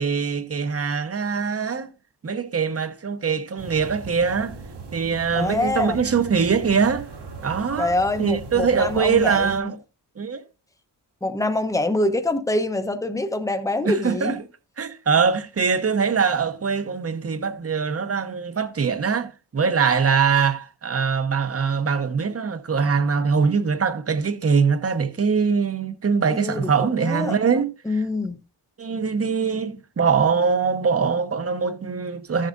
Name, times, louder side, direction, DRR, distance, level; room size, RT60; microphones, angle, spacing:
voice 1, 0.0-1.9 2.2-4.6 4.9-7.1 7.4-7.9 8.2-9.8 10.2-10.4 13.8-14.4 14.8-27.7 28.8-32.5, right 5 dB, 35° right, 0.9 m, -22 dB
sound 1, 3.6-9.6, right 4 dB, 70° right, 2.1 m, -38 dB
voice 2, 5.3-6.0 7.8-9.7 11.2-14.4 26.3-27.4 27.8-28.4, left 2 dB, 10° left, 0.9 m, -25 dB
14.0 x 7.5 x 2.6 m
wide cardioid pair, 120°, 42 cm